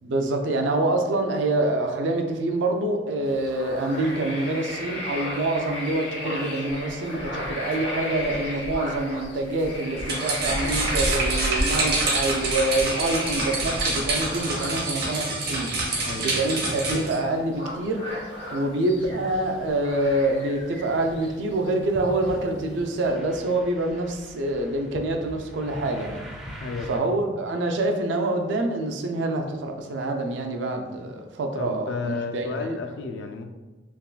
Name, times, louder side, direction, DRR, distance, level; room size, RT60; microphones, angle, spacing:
voice 1, 0.0-26.2 26.9-32.7, right 2 dB, 75° right, 4 dB, 0.4 m, -26 dB
sound 1, 3.2-23.1, equal, 90° left, 0.9 m, -34 dB
sound 2, 10.0-17.1, right 2 dB, 60° right, 0.8 m, -27 dB
sound 3, 19.0-27.0, equal, ahead, 0.4 m, -42 dB
voice 2, 26.6-27.1 31.5-33.5, left 4 dB, 70° left, 4 dB, 0.3 m, -32 dB
3.4 x 2.3 x 2.2 m, 1.2 s
head